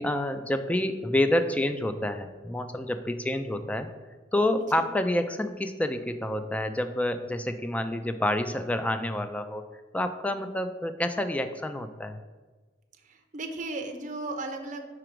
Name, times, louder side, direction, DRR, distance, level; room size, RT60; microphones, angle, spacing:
voice 1, 0.0-3.9 4.3-9.7 9.9-12.2, left 1 dB, 10° left, 9 dB, 0.3 m, -28 dB
voice 2, 13.1-14.8, right 2 dB, 40° right, 4 dB, 0.5 m, -35 dB
4.9 x 4.9 x 4.5 m, 1.3 s
head